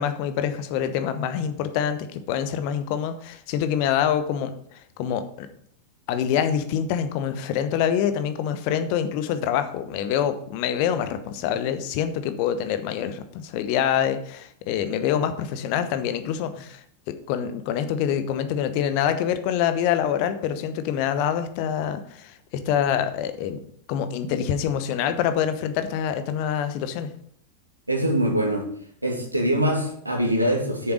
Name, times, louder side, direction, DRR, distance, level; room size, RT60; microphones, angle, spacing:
voice 1, 0.0-5.5 6.1-16.8 17.3-23.6 23.9-27.1, left 9 dB, 45° left, 10 dB, 1.0 m, -26 dB
voice 2, 27.9-28.7 29.0-30.9, equal, 85° right, 2 dB, 2.1 m, -23 dB
9.1 x 7.0 x 5.0 m, 0.66 s
figure-of-eight pair, 90°, 0 cm